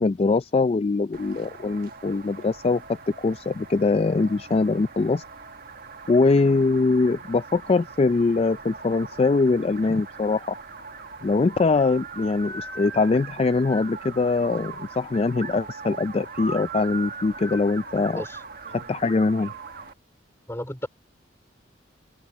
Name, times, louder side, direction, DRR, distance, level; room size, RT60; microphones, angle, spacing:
voice 1, 0.0-5.2 6.1-10.6 11.2-18.2 18.7-19.5, left 3 dB, 30° left, 0.3 m, -22 dB
sound 1, 1.1-19.9, right 4 dB, 50° right, 1.5 m, -40 dB
voice 2, 18.1-18.4 20.5-20.9, left 1 dB, 15° left, 3.1 m, -33 dB
head